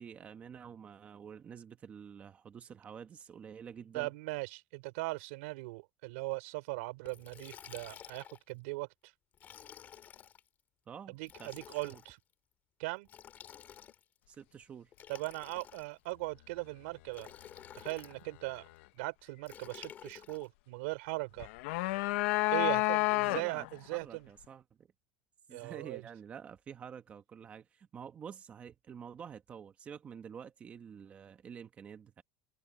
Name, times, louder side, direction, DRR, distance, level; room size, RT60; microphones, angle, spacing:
voice 1, 0.0-4.1 10.9-12.0 14.3-14.9 23.3-24.9 25.5-32.2, right 7 dB, 20° right, 1.1 m, -49 dB
voice 2, 3.9-8.9 11.1-12.2 12.8-13.1 15.1-17.3 17.8-18.7 19.0-21.5 22.5-24.3 25.5-26.0, right 24 dB, 80° right, 3.6 m, -39 dB
Liquid, 7.1-8.5 9.3-10.4 11.2-12.1 13.0-14.2 14.9-16.1 17.1-18.2 19.5-20.5, left 9 dB, 25° left, 2.6 m, -52 dB
sound 1, 21.4-23.7, left 25 dB, 85° left, 0.7 m, -30 dB
cardioid pair, 175°, 7 cm